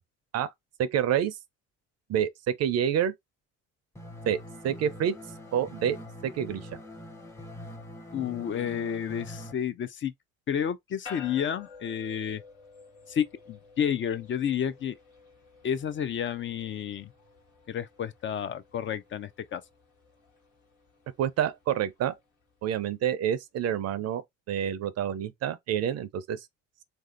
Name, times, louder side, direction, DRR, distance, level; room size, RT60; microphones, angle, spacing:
voice 1, 0.8-1.4 2.1-3.1 4.3-4.4 4.6-5.1 5.5-6.0 6.2-6.6 21.2-22.1 22.6-24.2 24.5-26.4, right 9 dB, 55° right, 0.5 m, -27 dB
sound 1, 4.0-9.5, equal, 10° left, 0.7 m, -44 dB
voice 2, 8.1-10.1 10.5-12.4 13.1-15.0 15.6-17.1 17.7-19.6, left 8 dB, 40° left, 0.4 m, -31 dB
sound 2, 11.1-22.6, left 5 dB, 85° left, 1.4 m, -52 dB
3.1 x 2.6 x 2.4 m
supercardioid pair, 65°, 31 cm